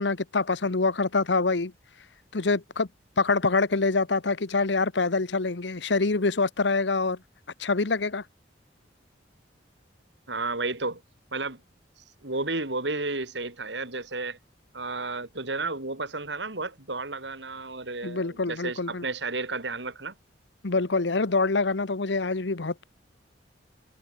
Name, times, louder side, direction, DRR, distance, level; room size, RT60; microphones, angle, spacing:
voice 1, 0.0-1.7 2.3-2.9 3.2-7.2 7.6-8.2 18.0-19.0 20.6-22.8, left 3 dB, 75° left, 1.0 m, -25 dB
voice 2, 10.3-11.0 11.3-11.6 12.2-14.4 14.7-20.1, right 3 dB, 75° right, 4.2 m, -32 dB
head